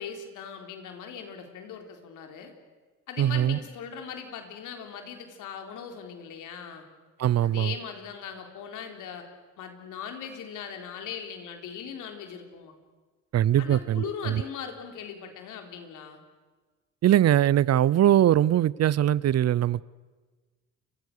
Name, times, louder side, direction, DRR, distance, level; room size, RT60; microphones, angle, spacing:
voice 1, 0.0-2.5 3.1-6.9 7.4-9.3 9.6-12.7 13.6-16.2, left 7 dB, 85° left, 5 dB, 3.8 m, -39 dB
voice 2, 3.2-3.6 7.2-7.7 13.3-14.4 17.0-19.8, right 11 dB, 55° right, 22 dB, 0.7 m, -22 dB
29.5 x 24.0 x 6.7 m, 1.3 s
cardioid pair, 90°, 30 cm